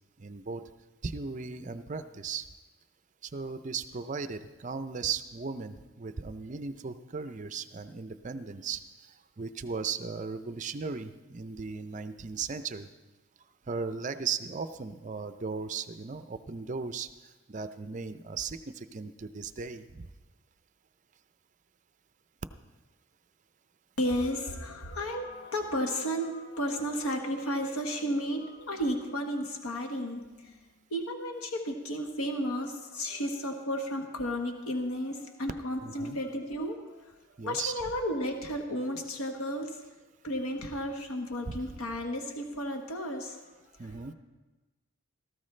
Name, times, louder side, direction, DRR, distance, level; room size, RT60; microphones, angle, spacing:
voice 1, 0.2-0.7 1.0-2.5 3.2-12.9 13.7-20.1 35.8-36.2 37.4-37.8 41.5-41.6 43.8-44.1, right 5 dB, 35° right, 11 dB, 0.5 m, -37 dB
voice 2, 24.0-30.6 30.9-37.1 37.4-39.8 40.2-43.4, equal, 90° left, 4 dB, 1.3 m, -33 dB
17.5 x 14.0 x 3.3 m, 1.2 s
head